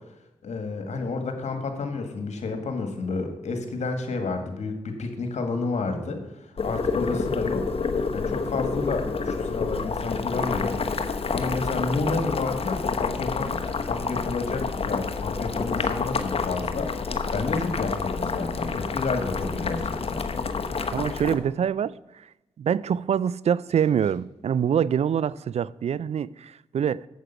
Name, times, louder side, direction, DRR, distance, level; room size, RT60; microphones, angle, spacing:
voice 1, 0.4-6.2 6.6-7.8 8.1-10.8 11.3-20.2, left 3 dB, 75° left, 1.8 m, -30 dB
Boiling, 6.6-21.3, left 4 dB, 55° left, 1.0 m, -28 dB
voice 2, 20.9-22.0 22.6-27.1, right 8 dB, 65° right, 0.4 m, -25 dB
8.3 x 7.6 x 5.8 m
supercardioid pair, 45°, 12 cm